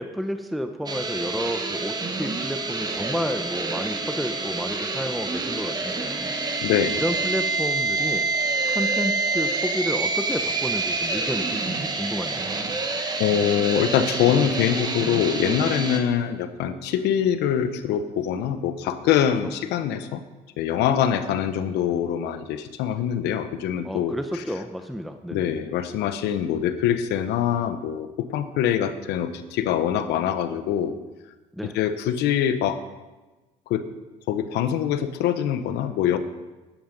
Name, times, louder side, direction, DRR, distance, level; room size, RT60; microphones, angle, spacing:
voice 1, 0.0-8.3 8.7-12.5 19.4-19.5 23.8-25.5 31.5-31.8, equal, ahead, 7 dB, 0.7 m, -31 dB
sound 1, 0.9-16.0, right 3 dB, 25° right, 1.3 m, -27 dB
voice 2, 6.6-7.0 13.2-20.2 20.6-24.1 25.3-31.0 31.7-32.8 33.7-33.8 34.3-36.2, left 9 dB, 85° left, 11 dB, 1.0 m, -24 dB
11.5 x 9.4 x 5.3 m, 1.2 s
cardioid pair, 110°, 17 cm